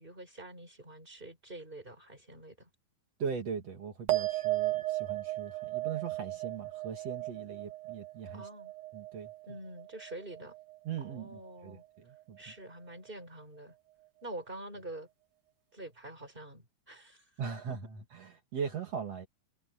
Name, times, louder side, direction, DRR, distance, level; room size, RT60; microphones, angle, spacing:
voice 1, 0.0-2.7 8.3-8.7 9.5-10.5 11.0-11.8 12.4-13.7 14.2-15.1 15.7-17.2, right 1 dB, 15° right, 6.9 m, -46 dB
voice 2, 3.2-8.5 8.9-9.3 10.8-12.4 17.4-19.3, right 6 dB, 55° right, 3.2 m, -40 dB
sound 1, 4.1-10.8 11.1-11.7, right 17 dB, 90° right, 3.2 m, -36 dB
omnidirectional pair, 3.5 m